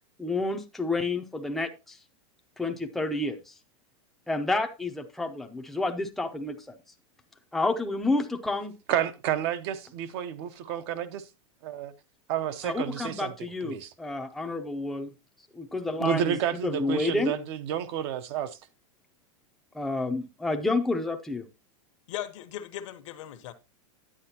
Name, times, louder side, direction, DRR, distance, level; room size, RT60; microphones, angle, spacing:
voice 1, 0.2-2.0 2.6-3.5 4.3-6.8 7.5-8.7 12.6-15.1 15.5-16.4 16.6-17.3 19.7-21.5, left 2 dB, ahead, 0.6 m, -29 dB
voice 2, 8.9-11.3 11.6-11.9 12.3-13.9 16.0-18.6, right 10 dB, 50° right, 0.8 m, -30 dB
voice 3, 22.1-23.5, left 12 dB, 65° left, 1.1 m, -38 dB
9.9 x 8.7 x 2.8 m
supercardioid pair, 150°, 17 cm